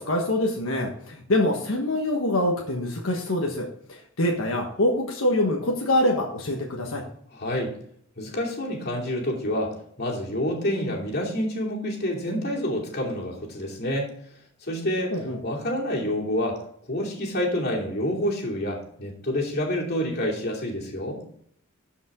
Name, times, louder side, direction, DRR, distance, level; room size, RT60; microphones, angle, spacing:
voice 1, 0.0-7.0 15.1-15.4, left 1 dB, 85° left, 0 dB, 1.3 m, -25 dB
voice 2, 7.3-7.7 8.2-14.1 14.7-16.6 16.9-21.2, left 1 dB, 50° left, -2 dB, 2.7 m, -28 dB
12.5 x 5.3 x 3.7 m, 0.64 s
head